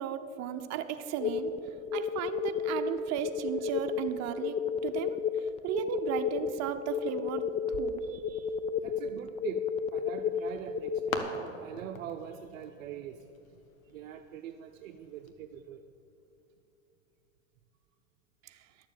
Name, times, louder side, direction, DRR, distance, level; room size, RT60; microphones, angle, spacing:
voice 1, 0.0-1.5 1.9-4.6 4.8-5.2 5.6-8.1 18.4-18.6, right 9 dB, 40° right, 7 dB, 0.9 m, -35 dB
sound 1, 1.2-11.2, left 6 dB, 15° left, 0.3 m, -32 dB
voice 2, 8.0-8.6 8.8-9.6 9.9-11.3 11.6-13.3 13.9-15.8, right 10 dB, 70° right, 6 dB, 0.7 m, -43 dB
sound 2, 10.2-15.3, left 5 dB, 80° left, 1.3 m, -44 dB
11.0 x 7.2 x 7.0 m, 2.8 s
hypercardioid pair, 95°, 40 cm